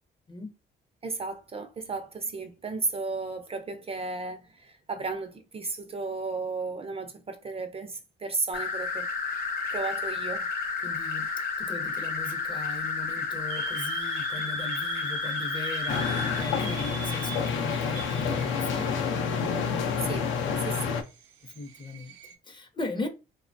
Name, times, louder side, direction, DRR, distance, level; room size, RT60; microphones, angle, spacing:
voice 1, 1.0-9.1 9.7-10.5 20.0-20.3 20.6-21.0, right 3 dB, 30° right, 0.4 m, -34 dB
sound 1, 8.5-16.4, left 5 dB, 50° left, 0.8 m, -31 dB
voice 2, 10.8-18.9 21.4-23.1, left 2 dB, 25° left, 0.5 m, -38 dB
sound 2, 13.5-22.4, right 7 dB, 90° right, 0.5 m, -42 dB
sound 3, 15.9-21.0, left 6 dB, 75° left, 0.5 m, -28 dB
3.0 x 2.1 x 2.5 m
cardioid pair, 90°, 20 cm